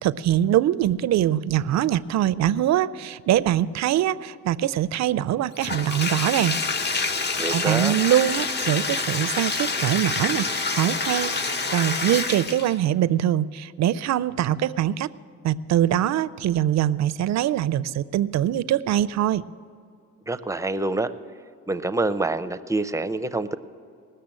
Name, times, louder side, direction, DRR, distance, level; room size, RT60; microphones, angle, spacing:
voice 1, 0.0-6.6 7.5-15.1 15.4-19.4, right 12 dB, 65° right, 17 dB, 0.5 m, -23 dB
Bathtub (filling or washing), 5.6-12.8, left 4 dB, 35° left, 0.8 m, -27 dB
voice 2, 7.4-7.9 20.3-21.1 21.7-23.6, right 2 dB, 10° right, 10 dB, 0.6 m, -26 dB
19.5 x 6.7 x 7.6 m, 2.4 s
cardioid pair, 90°, 30 cm